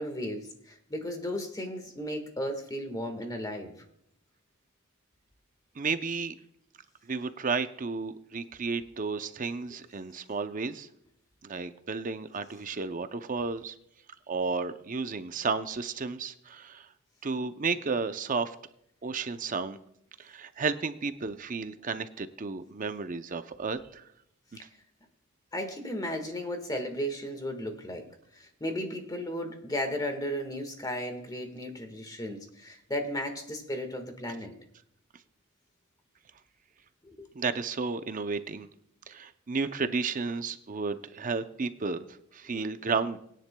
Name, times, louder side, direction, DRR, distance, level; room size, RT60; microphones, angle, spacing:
voice 1, 0.0-3.7 25.5-28.0 28.3-34.5 37.2-37.3, equal, 20° left, 5 dB, 1.6 m, -35 dB
voice 2, 5.8-6.4 7.0-10.9 11.4-13.7 14.3-16.9 17.2-18.6 19.0-19.8 20.2-24.0 37.3-38.7 39.1-42.0 42.3-43.2, right 4 dB, 40° right, 10 dB, 0.6 m, -32 dB
20.0 x 10.0 x 2.3 m, 0.73 s
head